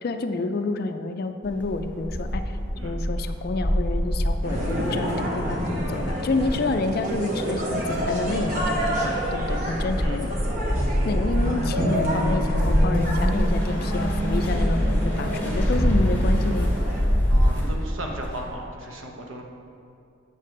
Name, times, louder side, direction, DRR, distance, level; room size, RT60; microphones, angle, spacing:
voice 1, 0.0-2.6 2.8-10.3 11.1-16.7, left 3 dB, 50° left, 8 dB, 0.3 m, -29 dB
sound 1, 1.4-18.5, equal, 10° left, 1.4 m, -25 dB
sound 2, 4.4-17.0, equal, 40° right, 1.1 m, -28 dB
voice 2, 17.3-19.4, right 1 dB, 75° right, 1 dB, 1.0 m, -34 dB
8.3 x 6.6 x 3.2 m, 2.5 s
head